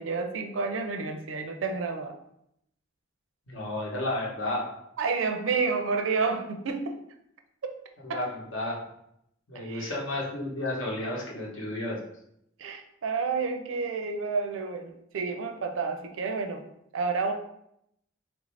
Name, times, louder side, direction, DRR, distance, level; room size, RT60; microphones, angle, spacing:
voice 1, 0.0-2.2 5.0-7.0 7.6-7.8 8.1-8.2 9.6-9.9 12.6-16.6 16.9-17.3, right 4 dB, 75° right, 6 dB, 0.4 m, -30 dB
voice 2, 3.5-4.7 8.0-8.7 9.5-12.0, left 1 dB, 65° left, -3 dB, 1.0 m, -32 dB
3.1 x 2.6 x 3.2 m, 0.76 s
head